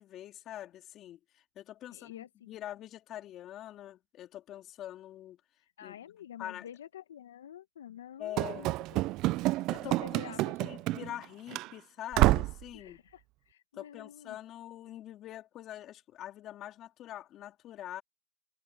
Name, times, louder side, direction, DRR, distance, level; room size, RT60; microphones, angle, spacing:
voice 1, 0.0-5.4 5.8-6.0 6.4-6.7 8.2-8.7 9.7-10.0 10.3-13.0 13.7-18.0, left 12 dB, 30° left, 3.5 m, -44 dB
voice 2, 1.9-2.5 5.6-9.4 9.8-10.8 12.7-14.4, left 10 dB, 70° left, 1.5 m, -49 dB
Run / Slam, 8.4-11.3 11.5-11.7 12.1-12.6, right 19 dB, 35° right, 0.4 m, -28 dB
hypercardioid pair, 130°, 0 cm